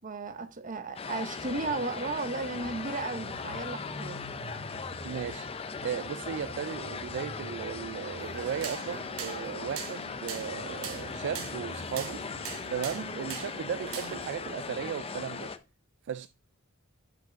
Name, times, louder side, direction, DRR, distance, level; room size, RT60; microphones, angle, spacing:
voice 1, 0.0-4.2, right 3 dB, 40° right, 0.8 m, -35 dB
sound 1, 1.0-15.6, left 5 dB, 30° left, 0.5 m, -39 dB
sound 2, 1.4-14.7, equal, 50° left, 2.0 m, -49 dB
voice 2, 5.0-5.5 5.8-12.2 12.7-15.5 16.0-16.3, right 8 dB, 55° right, 0.3 m, -36 dB
sound 3, 8.2-14.3, right 7 dB, 90° right, 1.1 m, -42 dB
6.0 x 5.2 x 5.0 m
head